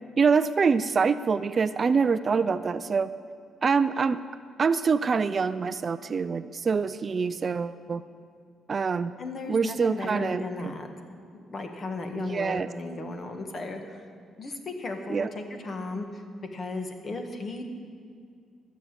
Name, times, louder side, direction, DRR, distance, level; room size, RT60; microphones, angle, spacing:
voice 1, 0.2-3.1 3.6-4.2 4.6-8.0 8.7-9.2 9.5-10.7 12.2-12.7 15.1-15.3, right 5 dB, 40° right, 13 dB, 0.4 m, -25 dB
voice 2, 9.2-10.9 11.4-14.0 14.4-16.2 16.5-17.6, left 2 dB, 40° left, 5 dB, 1.6 m, -35 dB
13.5 x 7.1 x 8.8 m, 2.2 s
cardioid pair, 90°, 0 cm